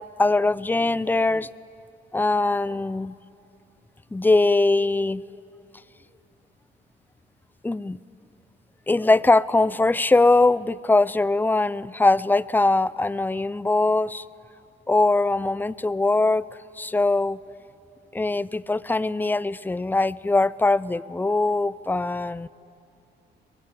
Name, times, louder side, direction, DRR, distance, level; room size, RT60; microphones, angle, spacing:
voice 1, 0.2-1.5 2.1-3.1 4.1-5.2 7.6-8.0 8.9-14.2 14.9-16.4 16.8-17.4 18.1-22.5, left 2 dB, 10° left, 19 dB, 0.5 m, -21 dB
23.5 x 21.5 x 8.8 m, 2.5 s
cardioid pair, 90°, 20 cm